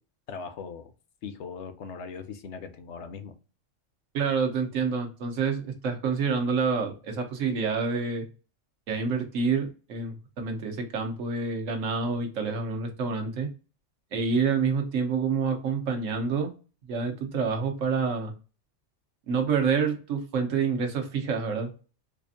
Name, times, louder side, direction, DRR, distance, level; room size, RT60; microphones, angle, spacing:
voice 1, 0.3-0.9 1.2-3.3, left 5 dB, 70° left, 0.9 m, -39 dB
voice 2, 4.1-8.2 8.9-13.5 14.1-16.5 16.9-18.3 19.3-21.7, right 5 dB, 85° right, 1.2 m, -27 dB
4.4 x 2.4 x 2.6 m
omnidirectional pair, 1.3 m